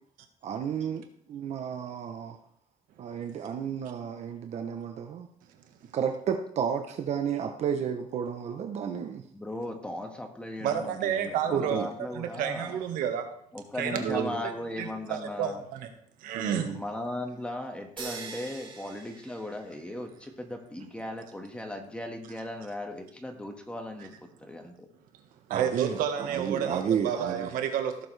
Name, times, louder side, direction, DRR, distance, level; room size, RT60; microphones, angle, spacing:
voice 1, 0.4-1.0 1.3-2.4 3.0-5.3 5.9-9.2 11.5-11.9 14.0-14.4 16.3-16.8 25.5-27.5, right 8 dB, 55° right, 5 dB, 0.9 m, -32 dB
voice 2, 9.3-12.8 13.5-15.6 16.7-24.9, left 1 dB, 10° left, 4 dB, 1.7 m, -37 dB
voice 3, 10.6-11.8 12.1-13.2 13.8-14.5 14.8-15.9 16.2-16.7 25.5-28.1, right 8 dB, 80° right, 6 dB, 1.5 m, -30 dB
sound 1, 18.0-20.1, right 5 dB, 35° right, 2.1 m, -42 dB
16.5 x 6.9 x 3.4 m, 0.66 s
cardioid pair, 120°, 14 cm